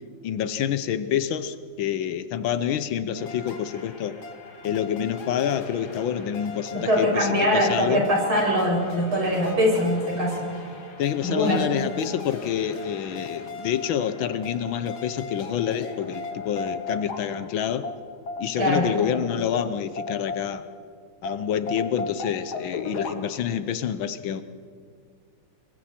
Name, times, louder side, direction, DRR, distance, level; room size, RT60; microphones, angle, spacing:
voice 1, 0.2-4.2 4.6-8.0 11.0-17.9 18.4-20.7 21.2-24.4, left 9 dB, 75° left, 12 dB, 1.5 m, -27 dB
sound 1, 3.1-20.8 21.2-23.1, left 3 dB, 50° left, 2.4 m, -38 dB
voice 2, 6.7-10.3 11.2-11.6 18.6-18.8, equal, 75° right, -2 dB, 6.4 m, -22 dB
26.5 x 22.5 x 4.4 m, 2.1 s
omnidirectional pair, 2.3 m